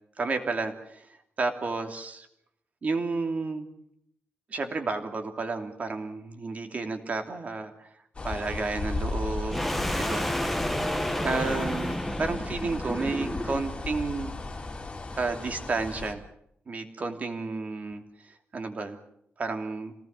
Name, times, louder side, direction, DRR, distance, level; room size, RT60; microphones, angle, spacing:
voice 1, 0.2-1.1 1.4-2.3 2.8-3.7 4.5-7.9 8.2-9.6 10.0-10.3 11.2-14.3 15.1-16.2 16.7-19.0 19.4-19.9, right 3 dB, 35° right, 5 dB, 2.9 m, -31 dB
sound 1, 8.1-16.1, left 3 dB, 25° left, 3.2 m, -36 dB
sound 2, 9.5-13.8, left 1 dB, ahead, 1.6 m, -30 dB
28.0 x 18.5 x 6.7 m, 0.72 s
wide cardioid pair, 170°, 4 cm